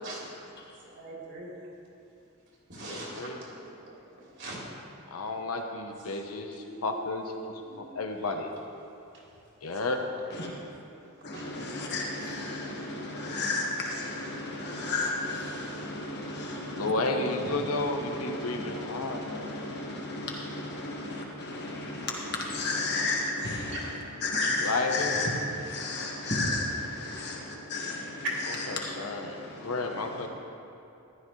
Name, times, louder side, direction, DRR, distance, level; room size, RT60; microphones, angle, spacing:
voice 1, 0.8-1.5 2.7-3.9 4.2-4.6 6.1-6.2 6.6-8.3 9.7-9.8 10.3-10.4 11.3-11.5 17.4-17.5, right 2 dB, 55° right, -5 dB, 2.9 m, -44 dB
voice 2, 2.8-3.4 5.1-8.5 9.6-10.0 16.8-19.5 24.6-25.3 28.8-30.3, left 2 dB, 80° left, 3 dB, 1.0 m, -32 dB
voice 3, 11.2-24.0 24.2-28.2 28.8-30.3, left 2 dB, 50° left, -2 dB, 1.6 m, -33 dB
14.5 x 11.5 x 3.2 m, 2.7 s
head